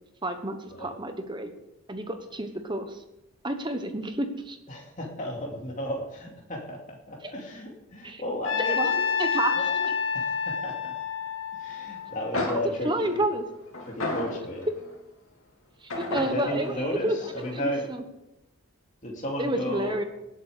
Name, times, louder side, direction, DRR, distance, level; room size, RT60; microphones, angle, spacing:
voice 1, 0.2-1.5 1.9-3.0 3.4-4.6 8.0-8.2 8.7-8.9 9.2-9.6 12.5-13.4 15.9-18.0 19.4-20.0, right 1 dB, 20° right, 7 dB, 1.1 m, -30 dB
voice 2, 4.7-9.2 9.5-9.9 10.1-10.9 11.5-13.2 13.9-14.7 16.2-17.8 19.0-20.0, left 1 dB, 35° left, -1 dB, 2.5 m, -34 dB
Trumpet, 8.4-12.7, left 6 dB, 55° left, 2.0 m, -28 dB
sound 1, 12.0-12.1 12.3-14.9 15.9-17.8, left 2 dB, 70° left, 3.1 m, -34 dB
18.5 x 8.6 x 5.0 m, 0.93 s
head